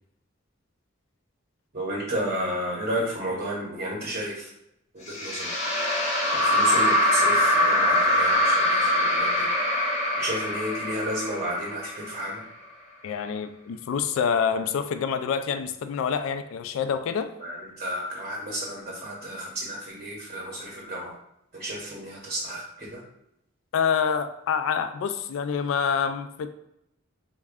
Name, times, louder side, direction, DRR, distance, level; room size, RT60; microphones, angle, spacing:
voice 1, 1.7-4.5 4.9-5.5 6.3-9.8 10.2-12.4 17.4-21.1 21.5-23.0, equal, 40° right, -3 dB, 0.7 m, -32 dB
sound 1, 5.1-12.4, left 1 dB, 35° left, 0.7 m, -23 dB
voice 2, 13.0-17.3 23.7-26.5, left 6 dB, 75° left, 10 dB, 0.3 m, -27 dB
3.4 x 2.1 x 3.5 m, 0.79 s
head